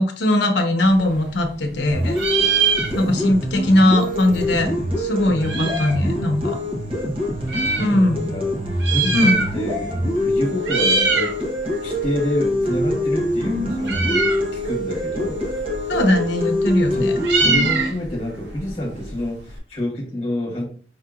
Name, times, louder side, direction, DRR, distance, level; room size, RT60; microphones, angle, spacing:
voice 1, 0.0-2.2 2.9-4.7 5.0-6.6 7.8-8.3 9.1-9.4 15.9-17.2, left 1 dB, 80° left, 0.8 m, -19 dB
Meow, 0.8-1.8 2.1-3.4 3.7-3.8 3.9-6.1 6.7-7.9 8.7-9.8 10.1-10.3 10.6-11.4 11.7-19.6, right 4 dB, 80° right, 0.9 m, -24 dB
sound 1, 1.9-17.9, left 1 dB, 30° right, 1.1 m, -25 dB
voice 2, 7.5-8.5 8.9-11.3 11.8-15.4 16.9-20.6, equal, 35° left, 1.3 m, -28 dB
5.3 x 2.9 x 2.4 m
head